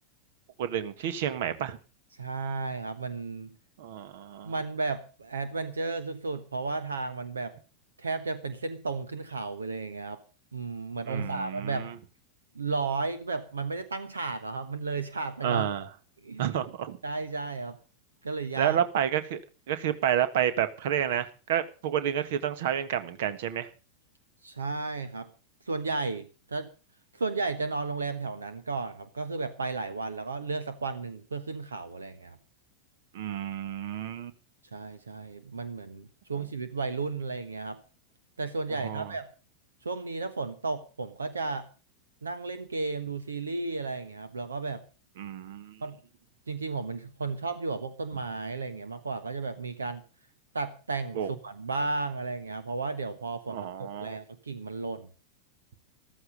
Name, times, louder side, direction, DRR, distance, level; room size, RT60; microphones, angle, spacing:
voice 1, 0.6-1.8 3.8-4.5 11.1-11.9 15.4-15.9 16.4-17.0 18.6-19.4 19.7-23.7 33.1-34.3 38.8-39.1 45.2-45.8 51.1-51.3 53.5-54.2, right 10 dB, 55° right, 13 dB, 1.5 m, -30 dB
voice 2, 2.1-3.5 4.4-7.5 8.0-10.2 10.5-12.0 12.5-15.7 16.2-16.5 17.0-17.8 18.2-18.8 24.4-25.3 25.6-26.7 27.1-32.4 34.7-37.8 38.4-39.3 39.8-41.7 42.2-44.8 45.8-46.0 46.5-50.0 50.5-55.1, right 3 dB, 75° right, 12 dB, 1.3 m, -33 dB
14.5 x 14.0 x 5.2 m, 0.35 s
figure-of-eight pair, 90°, 0 cm